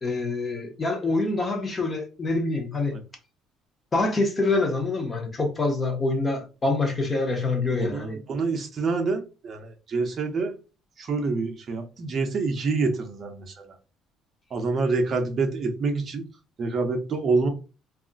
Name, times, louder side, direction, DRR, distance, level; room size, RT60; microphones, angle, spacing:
voice 1, 0.0-3.0 3.9-8.2, left 3 dB, 20° left, 0.7 m, -26 dB
voice 2, 7.7-10.5 11.0-13.4 14.5-16.2 16.6-17.5, right 4 dB, 30° right, 0.6 m, -26 dB
2.3 x 2.1 x 3.7 m
cardioid pair, 170°, 0 cm